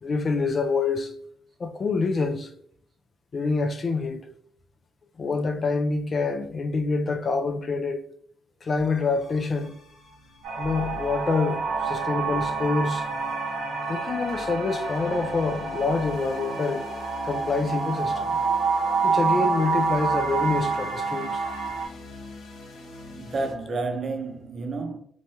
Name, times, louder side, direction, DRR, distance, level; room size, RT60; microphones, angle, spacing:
voice 1, 0.0-1.1 1.6-2.5 3.3-4.3 5.2-8.1 8.6-9.7 10.6-13.1 13.9-16.9 17.2-18.3 19.0-21.4, left 4 dB, 40° left, 0.3 m, -26 dB
sound 1, 8.8-23.5, left 3 dB, 65° left, 0.7 m, -43 dB
sound 2, 10.4-21.9, right 4 dB, 85° right, 0.9 m, -28 dB
voice 2, 23.1-25.0, right 3 dB, 45° right, 0.6 m, -30 dB
3.0 x 2.2 x 2.7 m
cardioid pair, 90°, 0 cm